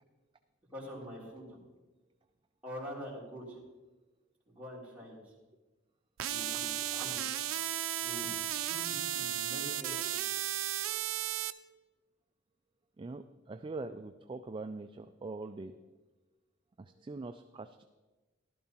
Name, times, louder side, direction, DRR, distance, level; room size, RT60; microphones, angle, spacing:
voice 1, 0.7-1.6 2.6-3.6 4.5-5.3 6.2-7.2 8.0-8.3 8.6-10.2, equal, 10° right, -7 dB, 3.2 m, -45 dB
sound 1, 6.2-11.5, right 12 dB, 90° right, 0.5 m, -34 dB
voice 2, 13.0-15.7 16.8-17.8, right 3 dB, 25° right, 8 dB, 0.3 m, -43 dB
14.5 x 12.0 x 2.9 m, 1.2 s
head